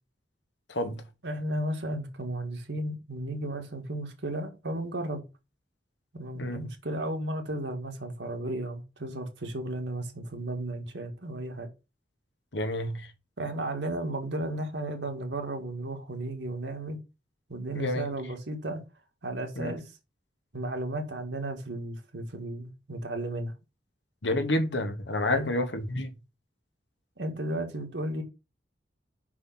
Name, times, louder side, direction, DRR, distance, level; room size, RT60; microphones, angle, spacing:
voice 1, 0.7-1.0 6.4-6.7 12.5-13.1 17.7-18.1 19.6-19.8 24.2-26.1, left 1 dB, 80° left, 1.1 m, -29 dB
voice 2, 1.2-5.2 6.1-11.7 13.4-17.0 17.5-18.8 19.2-19.9 20.5-23.5 25.3-25.5 27.2-28.2, right 1 dB, 80° right, 1.8 m, -34 dB
5.7 x 4.8 x 5.8 m
head